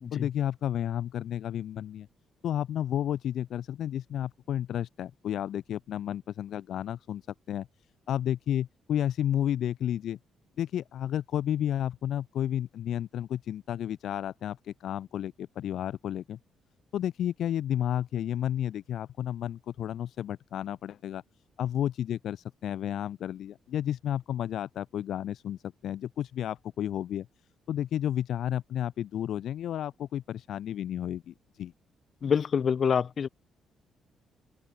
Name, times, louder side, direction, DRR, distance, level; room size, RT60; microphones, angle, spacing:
voice 1, 0.1-2.1 2.4-7.7 8.1-10.2 10.6-16.4 16.9-21.2 21.6-27.3 27.7-31.7, left 11 dB, 70° left, 0.7 m, -32 dB
voice 2, 32.2-33.3, left 7 dB, 50° left, 0.3 m, -26 dB
open air
cardioid pair, 90°, 0 cm